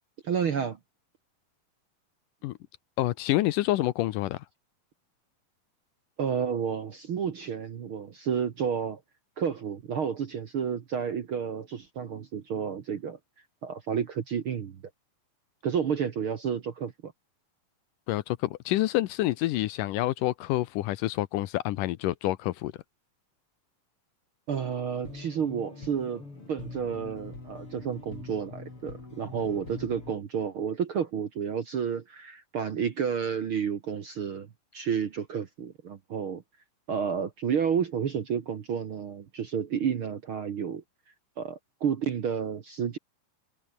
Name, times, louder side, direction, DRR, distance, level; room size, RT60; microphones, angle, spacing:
voice 1, 0.2-0.8 6.2-9.0 9.4-13.2 13.6-14.8 15.6-17.1 24.5-26.2 26.5-34.5 34.7-36.4 36.9-40.8 41.4-43.0, right 7 dB, 55° right, 1.6 m, -31 dB
voice 2, 3.0-4.4 18.1-22.7, left 16 dB, 75° left, 2.2 m, -27 dB
sound 1, 25.0-30.1, left 3 dB, 35° left, 7.0 m, -44 dB
omnidirectional pair, 4.1 m